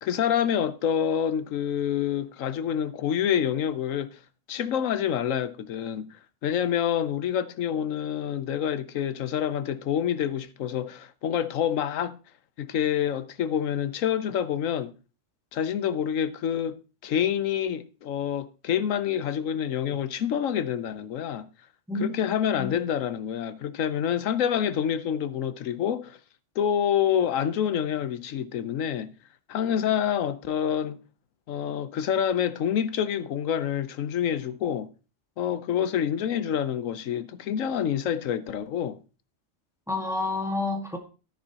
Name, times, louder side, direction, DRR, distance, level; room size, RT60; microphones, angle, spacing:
voice 1, 0.0-4.2 4.5-12.2 12.6-14.9 15.5-16.7 17.0-21.5 22.0-26.2 26.6-29.1 29.5-31.0 31.5-34.9 35.4-39.0, left 9 dB, 90° left, 1.1 m, -27 dB
voice 2, 39.9-41.0, left 3 dB, ahead, 1.5 m, -29 dB
13.0 x 10.5 x 2.9 m
omnidirectional pair, 1.3 m